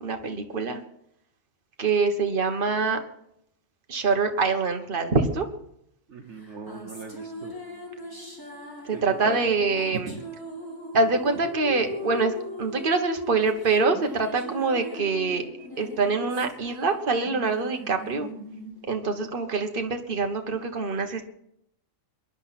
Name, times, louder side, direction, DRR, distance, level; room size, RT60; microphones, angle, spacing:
voice 1, 0.0-0.8 1.8-3.0 3.9-5.5 9.0-10.1 10.9-15.4 15.8-18.3 18.9-21.2, right 4 dB, 40° right, 5 dB, 1.5 m, -25 dB
voice 2, 6.1-7.5 8.9-9.4 9.9-10.2, right 5 dB, 60° right, 4 dB, 1.3 m, -38 dB
sound 1, 6.4-20.0, equal, 15° left, 3.0 m, -40 dB
22.5 x 11.0 x 4.3 m, 0.74 s
omnidirectional pair, 1.4 m